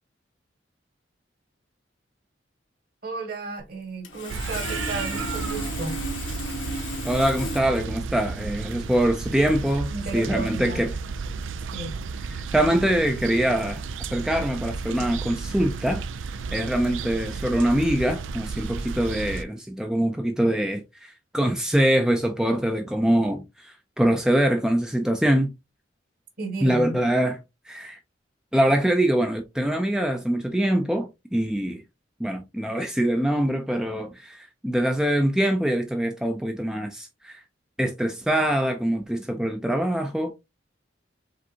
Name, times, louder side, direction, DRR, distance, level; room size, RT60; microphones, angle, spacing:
voice 1, 3.0-6.0 9.9-10.8 11.7-11.9 26.4-27.0, right 3 dB, 50° right, 1.8 m, -33 dB
Sawing, 3.6-3.7 4.0-7.6, left 1 dB, 85° left, 1.4 m, -34 dB
sound 1, 4.3-19.4, right 4 dB, 90° right, 0.4 m, -33 dB
voice 2, 7.0-10.9 12.5-13.8 14.1-16.0 16.5-25.5 26.6-27.4 27.7-28.0 28.5-31.8 32.2-37.4 37.8-40.3, right 1 dB, 5° right, 0.4 m, -24 dB
5.0 x 3.5 x 2.8 m
head